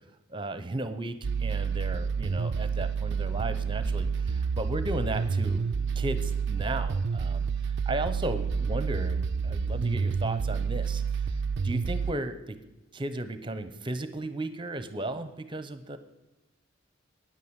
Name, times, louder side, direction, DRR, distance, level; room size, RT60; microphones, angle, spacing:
voice 1, 0.3-5.6 6.0-11.3 11.6-12.6 12.9-16.0, right 1 dB, 25° right, 10 dB, 0.8 m, -35 dB
sound 1, 1.2-12.1, right 5 dB, 60° right, 0.4 m, -29 dB
9.7 x 9.2 x 8.1 m, 1.1 s
head